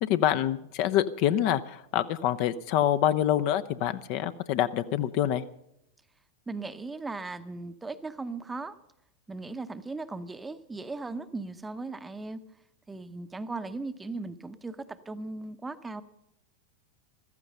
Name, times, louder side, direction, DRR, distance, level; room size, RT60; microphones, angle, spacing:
voice 1, 0.0-5.4, left 11 dB, 45° left, 12 dB, 0.6 m, -26 dB
voice 2, 6.5-8.8 9.3-12.4 12.9-16.0, right 3 dB, 10° right, 11 dB, 0.8 m, -37 dB
15.5 x 14.0 x 5.6 m, 0.78 s
figure-of-eight pair, 90°, 0 cm